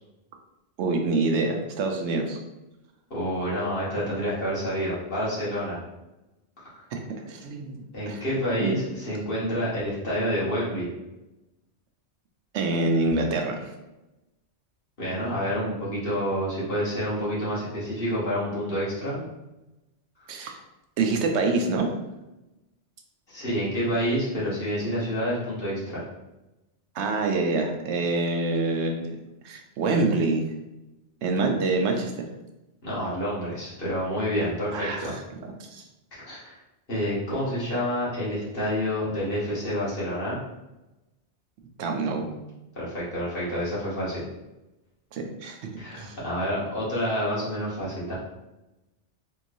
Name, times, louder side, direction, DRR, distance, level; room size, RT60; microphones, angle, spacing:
voice 1, 0.8-2.4 6.9-7.0 7.3-8.2 8.6-8.7 12.5-13.7 20.3-20.6 21.0-21.9 27.0-29.2 29.4-30.4 31.2-32.1 34.7-35.1 35.6-35.8 41.8-42.3 45.1-45.6 46.0-46.2, right 3 dB, 80° right, 3 dB, 0.9 m, -26 dB
voice 2, 3.1-5.8 6.6-6.9 7.9-10.9 15.0-19.2 23.3-26.0 32.8-35.2 36.1-36.5 36.9-40.4 42.7-44.2 45.8-48.1, equal, 55° left, -8 dB, 1.5 m, -28 dB
3.6 x 3.1 x 2.6 m, 0.99 s
omnidirectional pair, 1.2 m